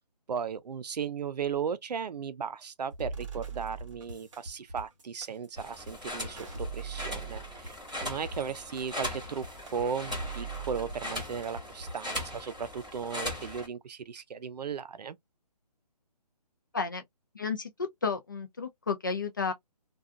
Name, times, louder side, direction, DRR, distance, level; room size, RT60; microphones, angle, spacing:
voice 1, 0.3-7.8 8.0-15.2, right 6 dB, 75° right, 0.5 m, -36 dB
sound 1, 2.9-12.0, right 4 dB, 50° right, 0.9 m, -41 dB
sound 2, 5.6-13.7, left 1 dB, ahead, 0.8 m, -39 dB
voice 2, 17.3-17.7 18.0-19.5, left 5 dB, 30° left, 0.4 m, -32 dB
2.4 x 2.3 x 2.4 m
hypercardioid pair, 175°, 21 cm